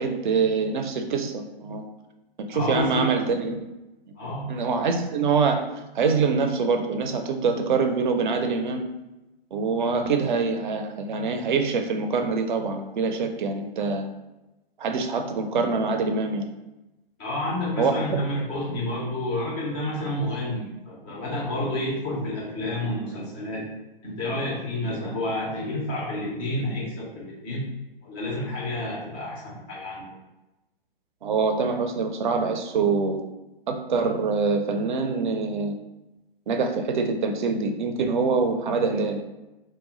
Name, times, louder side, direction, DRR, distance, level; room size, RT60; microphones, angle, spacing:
voice 1, 0.0-1.8 2.5-3.6 4.5-5.6 5.9-8.9 9.5-14.1 14.8-16.4 17.8-18.2 31.2-33.2 33.7-35.8 36.5-39.2, right 4 dB, 55° right, 6 dB, 0.5 m, -25 dB
voice 2, 2.5-3.1 4.2-4.5 17.2-23.7 24.0-27.7 28.0-30.1, left 1 dB, 10° left, -5 dB, 0.3 m, -29 dB
2.1 x 2.0 x 3.7 m, 1.0 s
figure-of-eight pair, 130°, 29 cm